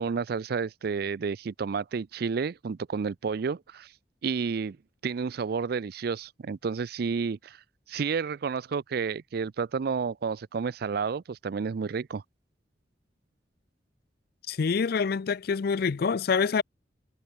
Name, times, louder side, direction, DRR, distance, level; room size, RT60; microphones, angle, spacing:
voice 1, 0.0-3.9 4.2-4.8 5.0-7.6 7.9-12.2, right 5 dB, 55° right, 0.4 m, -30 dB
voice 2, 14.5-16.6, left 5 dB, 55° left, 0.4 m, -26 dB
head